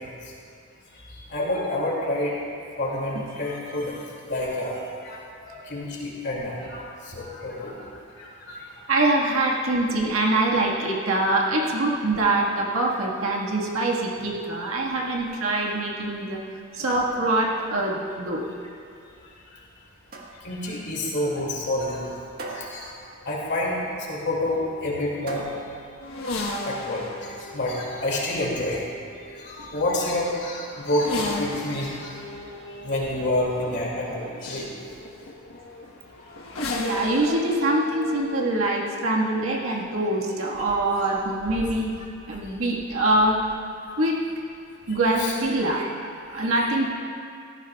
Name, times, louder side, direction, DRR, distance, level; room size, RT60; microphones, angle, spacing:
voice 1, 1.3-2.3 2.8-4.0 4.3-5.2 5.7-6.8 7.1-7.7 8.2-8.6 20.4-22.2 22.5-22.9 23.2-23.8 24.1-25.4 26.6-28.8 29.4-32.1 32.8-34.6 37.3-37.4 40.6-40.7 45.2-45.3 46.3-46.5, left 1 dB, 55° left, -4 dB, 2.5 m, -28 dB
voice 2, 8.9-16.4 16.7-18.5 36.7-41.9 42.3-43.4 44.0-44.2 44.9-46.9, right 2 dB, 90° right, -2 dB, 1.7 m, -24 dB
sound 1, 17.0-26.8, right 1 dB, 50° right, 1.5 m, -43 dB
sound 2, 26.0-43.8 44.9-45.8, left 2 dB, 80° left, 1.3 m, -37 dB
17.5 x 14.0 x 2.4 m, 2.4 s
head